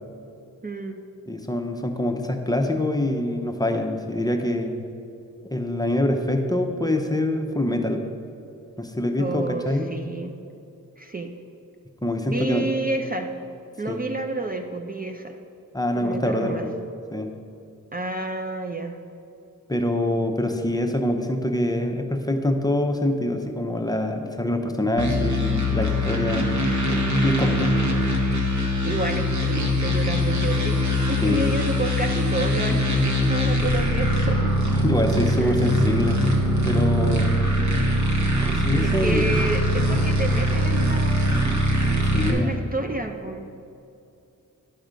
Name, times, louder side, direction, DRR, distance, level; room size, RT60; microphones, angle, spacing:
voice 1, 0.6-1.0 9.2-10.3 11.0-11.3 12.3-13.3 13.8-15.4 15.9-16.7 17.9-19.0 28.8-34.5 35.4-35.7 37.6-37.8 38.8-41.7 42.3-43.4, right 2 dB, 25° right, 4 dB, 0.6 m, -30 dB
voice 2, 1.3-4.8 5.5-8.0 8.8-9.9 12.0-12.7 13.9-14.0 15.7-16.7 17.1-17.3 19.7-26.5 26.9-27.7 31.2-31.5 34.8-36.2 36.6-37.3 38.4-39.5 39.9-40.0 42.1-42.5, left 1 dB, 10° left, 4 dB, 0.7 m, -25 dB
sound 1, 25.0-42.3, equal, 60° right, 1.4 m, -22 dB
11.0 x 6.0 x 5.1 m, 2.6 s
wide cardioid pair, 95°, 33 cm